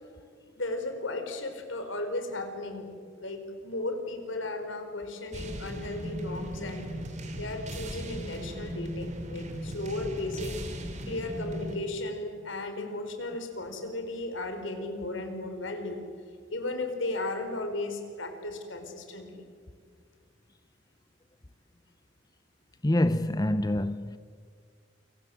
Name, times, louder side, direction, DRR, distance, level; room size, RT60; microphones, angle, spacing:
voice 1, 0.6-6.9 7.4-10.6 11.0-16.0 16.5-19.4, left 2 dB, 80° left, 4.5 m, -35 dB
sound 1, 5.3-11.8, equal, 40° right, 3.2 m, -37 dB
voice 2, 22.8-24.2, left 1 dB, 20° left, 0.7 m, -26 dB
28.5 x 24.5 x 7.7 m
head